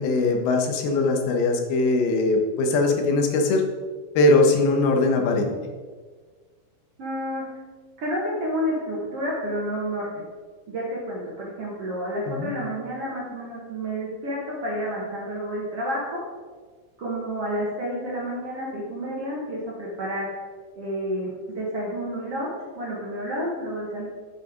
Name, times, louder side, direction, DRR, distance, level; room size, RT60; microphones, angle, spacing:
voice 1, 0.0-3.6 4.2-5.5 12.3-12.5, left 2 dB, 85° left, 3 dB, 3.0 m, -21 dB
voice 2, 7.0-7.5 8.0-10.2 10.7-16.2 17.0-20.3 20.8-24.1, equal, 55° right, -5 dB, 1.9 m, -30 dB
8.7 x 6.5 x 5.0 m, 1.5 s
omnidirectional pair, 4.3 m